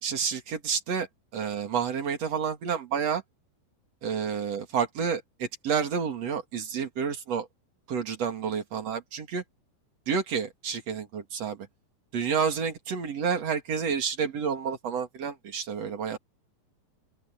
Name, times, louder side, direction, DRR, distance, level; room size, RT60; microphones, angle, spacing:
voice 1, 0.0-1.1 1.3-3.2 4.0-7.5 7.9-9.4 10.1-11.6 12.1-16.2, right 6 dB, 40° right, 3.1 m, -29 dB
open air
omnidirectional pair, 5.0 m